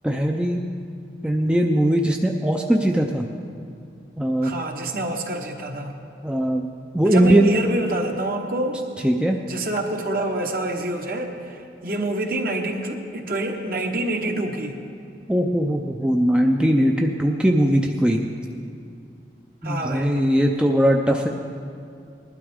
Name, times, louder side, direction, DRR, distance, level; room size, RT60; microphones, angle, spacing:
voice 1, 0.0-0.6 1.2-3.2 4.2-4.5 6.2-6.7 6.9-7.5 9.0-9.4 15.3-18.2 19.6-21.3, right 1 dB, 5° right, 1 dB, 0.4 m, -20 dB
voice 2, 4.4-6.0 7.0-8.8 9.5-14.8 19.6-20.2, right 1 dB, 50° right, 2 dB, 1.2 m, -27 dB
20.0 x 12.0 x 3.6 m, 2.4 s
head